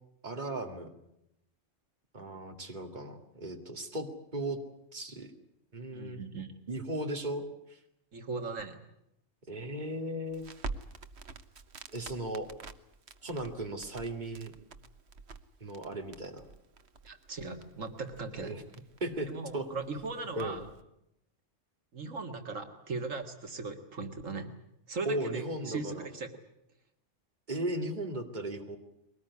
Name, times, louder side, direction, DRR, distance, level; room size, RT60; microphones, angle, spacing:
voice 1, 0.2-0.9 2.1-4.6 4.9-5.3 5.7-6.2 6.7-7.4 7.7-7.8 9.5-10.5 11.9-12.5 13.2-14.5 15.6-16.4 18.4-18.6 19.0-19.7 20.4-20.6 25.0-26.1 27.5-28.8, right 1 dB, 35° right, 4 dB, 2.5 m, -36 dB
voice 2, 5.9-6.5 8.1-8.8 17.0-18.6 19.3-20.7 21.9-24.5 24.9-26.3, right 3 dB, 85° right, 6 dB, 2.3 m, -38 dB
Crackle, 10.3-20.8, right 3 dB, 60° right, 1.4 m, -48 dB
22.5 x 19.0 x 9.8 m, 0.81 s
omnidirectional pair, 1.3 m